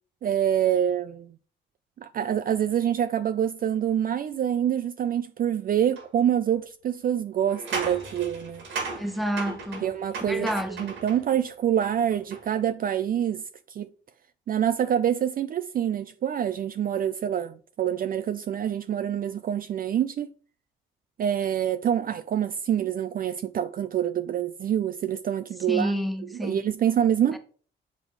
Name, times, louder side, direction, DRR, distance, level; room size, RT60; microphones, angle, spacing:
voice 1, 0.2-1.3 2.0-8.6 9.8-10.5 10.8-13.4 13.7-13.9 14.5-20.3 21.2-25.9 26.3-27.4, right 9 dB, 45° right, 0.4 m, -26 dB
sound 1, 6.0-6.1 7.5-11.4 11.8-12.6, right 4 dB, 75° right, 2.2 m, -36 dB
voice 2, 8.9-9.8 10.3-10.9 25.7-26.6 27.3-27.4, equal, ahead, 1.2 m, -29 dB
8.1 x 3.5 x 4.7 m
cardioid pair, 90°, 20 cm